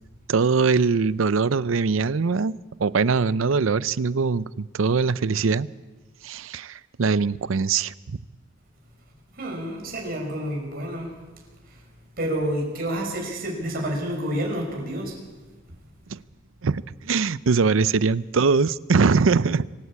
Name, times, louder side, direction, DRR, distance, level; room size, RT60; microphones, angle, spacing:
voice 1, 0.3-5.7 6.2-8.2 16.1-16.2 16.6-19.7, right 4 dB, 80° right, 17 dB, 0.6 m, -22 dB
voice 2, 9.3-11.1 12.2-15.2, right 1 dB, 50° right, 0 dB, 5.7 m, -29 dB
26.0 x 13.0 x 8.6 m, 1.3 s
head